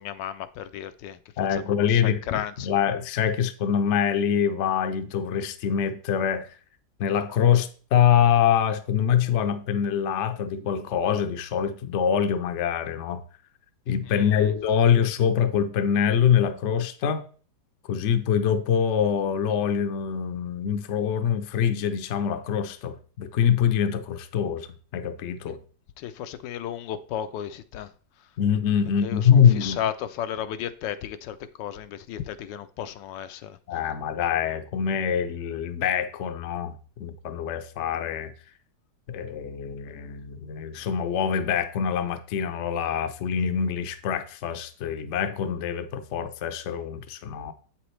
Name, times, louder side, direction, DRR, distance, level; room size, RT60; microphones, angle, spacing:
voice 1, 0.0-1.2 1.8-2.7 14.1-14.3 25.5-25.6 26.0-27.9 29.0-33.6, left 10 dB, 85° left, 1.2 m, -34 dB
voice 2, 1.4-6.5 7.0-13.2 13.9-17.3 17.9-24.7 24.9-25.6 28.4-29.8 33.7-38.3 39.1-47.5, left 8 dB, 60° left, 0.7 m, -24 dB
7.9 x 6.0 x 3.2 m
omnidirectional pair, 1.9 m